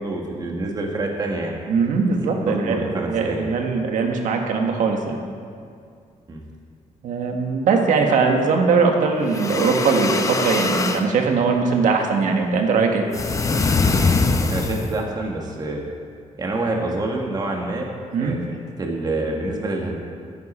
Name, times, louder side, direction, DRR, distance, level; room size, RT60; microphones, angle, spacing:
voice 1, 0.0-1.5 2.3-3.5 6.3-6.4 14.5-15.8 16.4-17.9 18.2-20.0, right 2 dB, 30° right, 0 dB, 1.5 m, -27 dB
voice 2, 1.7-5.2 7.0-13.0 18.1-18.4, right 4 dB, 85° right, 3 dB, 1.5 m, -20 dB
sound 1, 9.2-11.1 13.1-15.0, left 4 dB, 25° left, 0.7 m, -22 dB
13.5 x 10.5 x 4.3 m, 2.2 s
cardioid pair, 140°, 13 cm